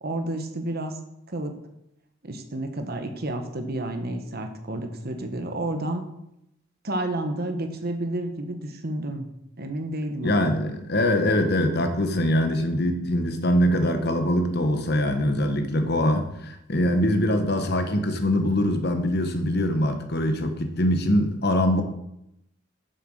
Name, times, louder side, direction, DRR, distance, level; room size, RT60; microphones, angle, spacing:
voice 1, 0.0-0.9 1.3-1.5 2.2-6.0 6.8-9.3 9.6-10.5, right 1 dB, 50° right, 6 dB, 1.2 m, -30 dB
voice 2, 10.2-21.8, left 1 dB, 55° left, 7 dB, 1.2 m, -23 dB
7.6 x 6.9 x 6.4 m, 0.82 s
head